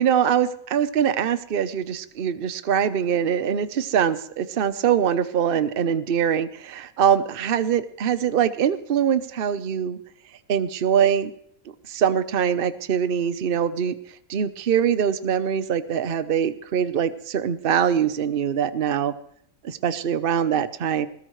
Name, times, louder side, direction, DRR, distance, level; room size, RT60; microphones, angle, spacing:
voice 1, 0.0-10.0 10.5-11.3 11.9-13.9 14.3-19.1 19.6-21.1, right 8 dB, 45° right, 12 dB, 0.9 m, -23 dB
20.0 x 17.0 x 3.2 m, 0.67 s
omnidirectional pair, 1.5 m